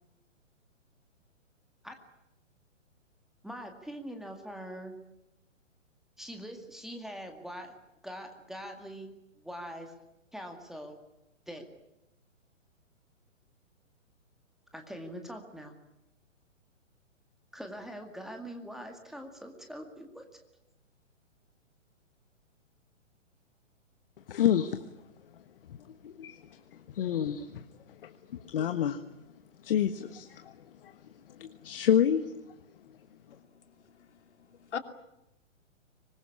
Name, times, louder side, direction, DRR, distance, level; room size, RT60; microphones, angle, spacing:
voice 1, 3.4-5.0 6.2-7.8 8.0-9.9 10.3-11.0 11.5-11.7 14.7-15.7 17.5-20.3, equal, ahead, 4 dB, 2.1 m, -43 dB
voice 2, 24.3-24.8 25.7-25.8 26.0-29.0 29.6-31.0 31.3-32.3, left 9 dB, 45° left, 9 dB, 1.4 m, -29 dB
voice 3, 33.3-33.6 33.9-34.8, left 7 dB, 60° left, 7 dB, 2.9 m, -42 dB
25.0 x 21.0 x 9.8 m, 0.88 s
figure-of-eight pair, 125°, 38 cm